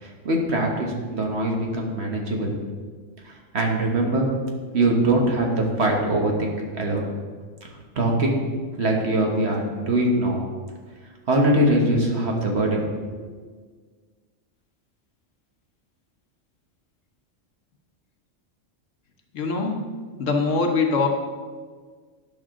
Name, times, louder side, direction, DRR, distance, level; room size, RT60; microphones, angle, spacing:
voice 1, 0.0-2.5 3.2-4.3 4.7-7.1 7.9-8.4 8.8-10.4 11.3-12.9 13.2-13.3, right 1 dB, 55° right, 0 dB, 1.5 m, -22 dB
voice 2, 19.3-19.8 20.2-21.1, left 4 dB, 75° left, 2 dB, 1.4 m, -22 dB
10.5 x 6.0 x 3.7 m, 1.5 s
omnidirectional pair, 1.3 m